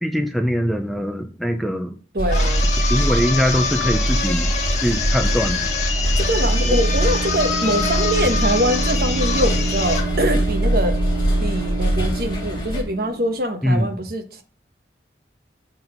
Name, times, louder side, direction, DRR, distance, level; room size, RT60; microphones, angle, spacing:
voice 1, 0.0-2.0 2.9-4.5 4.8-5.6 6.6-6.8 13.6-13.9, equal, ahead, 0.4 m, -22 dB
voice 2, 2.1-2.7 6.1-11.0 11.4-14.4, equal, 55° right, 1.1 m, -23 dB
sound 1, 2.2-12.8, right 1 dB, 25° left, 1.8 m, -22 dB
sound 2, 2.3-10.1, left 5 dB, 40° left, 1.3 m, -26 dB
sound 3, 5.7-13.5, right 3 dB, 75° right, 0.5 m, -30 dB
7.0 x 3.9 x 5.8 m
head